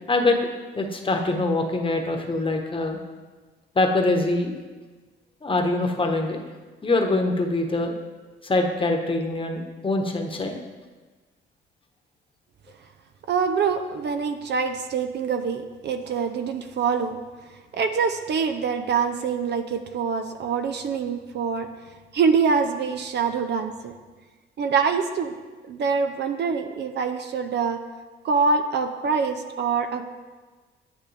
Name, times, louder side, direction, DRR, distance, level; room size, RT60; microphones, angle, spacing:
voice 1, 0.7-3.0 3.7-4.6 5.4-6.4 6.8-7.9 8.4-10.6, left 2 dB, 25° left, 3 dB, 1.2 m, -24 dB
voice 2, 13.3-17.2 17.7-21.7 22.1-24.0 24.6-25.4 25.6-27.8 28.2-30.1, right 5 dB, 60° right, 7 dB, 0.7 m, -25 dB
9.5 x 8.4 x 3.4 m, 1.3 s
cardioid pair, 90°, 20 cm